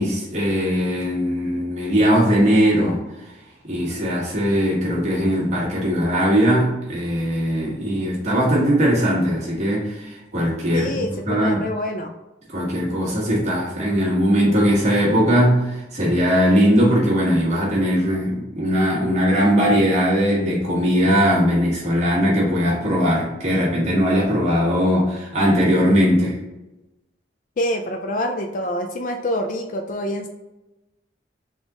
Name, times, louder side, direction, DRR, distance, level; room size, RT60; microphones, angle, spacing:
voice 1, 0.0-3.3 3.6-11.6 12.5-26.4, equal, 40° right, -6 dB, 1.3 m, -19 dB
voice 2, 10.7-12.1 27.6-30.3, left 1 dB, 45° left, 4 dB, 0.3 m, -26 dB
3.8 x 3.5 x 3.6 m, 1.0 s
head